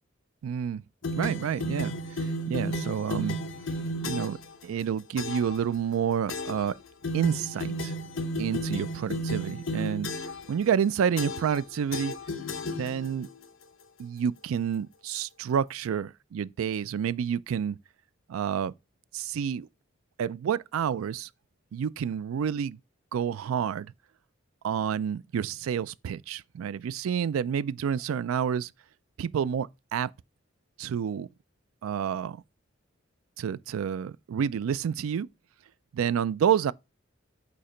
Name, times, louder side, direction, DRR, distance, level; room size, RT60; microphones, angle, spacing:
voice 1, 0.4-0.8 1.2-3.4 4.0-6.8 7.1-7.9 8.4-10.1 10.5-12.2 12.7-13.3 14.0-17.8 18.3-18.7 19.1-19.7 20.2-21.3 21.7-22.8 23.1-23.9 24.6-28.7 29.2-30.1 30.8-31.3 31.8-32.4 33.4-35.3 35.9-36.7, right 8 dB, 90° right, 0.3 m, -29 dB
sound 1, 1.0-4.5 5.2-5.6 6.3-6.7 7.0-10.5 11.2-11.6 11.9-13.2, equal, 70° left, 0.8 m, -33 dB
8.5 x 2.9 x 5.0 m
head